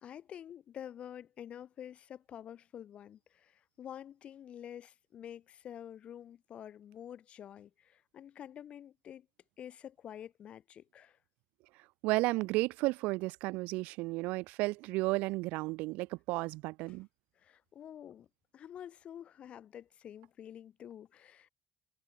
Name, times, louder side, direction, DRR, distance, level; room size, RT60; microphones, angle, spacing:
voice 1, 0.0-9.3 9.6-11.2 16.9-17.0 17.3-18.3 18.5-21.5, left 10 dB, 50° left, 1.6 m, -48 dB
voice 2, 12.0-17.1, right 22 dB, 80° right, 0.5 m, -33 dB
cardioid pair, 110°, 3 cm